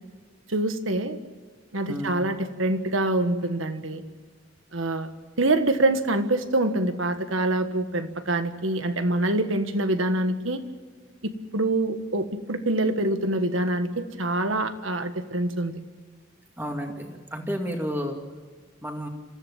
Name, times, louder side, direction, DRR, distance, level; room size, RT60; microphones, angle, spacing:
voice 1, 0.5-1.2 1.7-4.0 4.7-5.1 5.4-10.6 11.2-15.7, right 2 dB, 75° right, 9 dB, 1.5 m, -25 dB
voice 2, 16.6-18.2 18.8-19.1, equal, 10° right, 3 dB, 2.2 m, -31 dB
26.5 x 15.0 x 7.3 m, 1.5 s
head